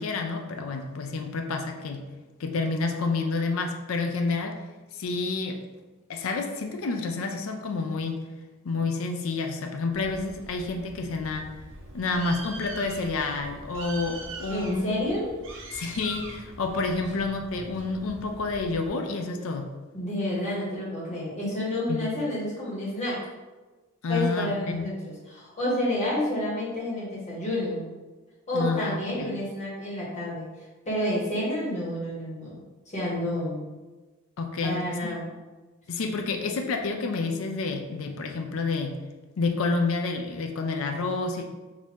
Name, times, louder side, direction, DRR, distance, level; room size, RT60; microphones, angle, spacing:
voice 1, 0.0-2.0 2.4-4.6 4.9-5.6 6.1-8.2 8.6-11.5 11.9-14.9 15.7-19.7 21.9-22.1 24.0-24.9 28.5-29.3 34.4-35.1 35.9-39.0 39.4-41.4, left 3 dB, 70° left, 4 dB, 0.5 m, -29 dB
Bird, 9.9-18.9, right 2 dB, 60° right, 0.6 m, -42 dB
voice 2, 14.5-15.3 17.1-17.3 19.9-23.2 24.1-24.9 25.3-27.9 28.5-30.5 30.8-33.7 34.6-35.3, left 1 dB, 30° left, -6 dB, 1.5 m, -29 dB
6.0 x 2.7 x 3.0 m, 1.2 s
head